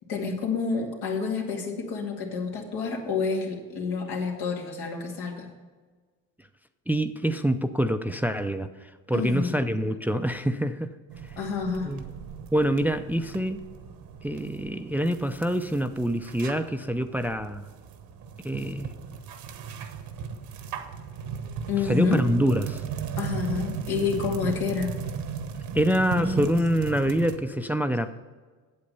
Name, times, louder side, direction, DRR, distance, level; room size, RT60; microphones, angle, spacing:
voice 1, 0.1-5.5 9.1-9.5 11.4-11.9 21.7-22.4 23.2-24.9 26.1-26.4 27.5-27.6, left 5 dB, 80° left, 0 dB, 2.2 m, -29 dB
voice 2, 6.9-10.9 11.8-12.0 12.5-13.6 14.2-17.7 18.4-18.9 21.8-22.8 25.7-28.1, equal, 5° right, 8 dB, 0.5 m, -26 dB
sound 1, 11.1-27.4, right 6 dB, 70° right, 1.2 m, -37 dB
8.5 x 7.9 x 5.4 m, 1.4 s
supercardioid pair, 90°, 35 cm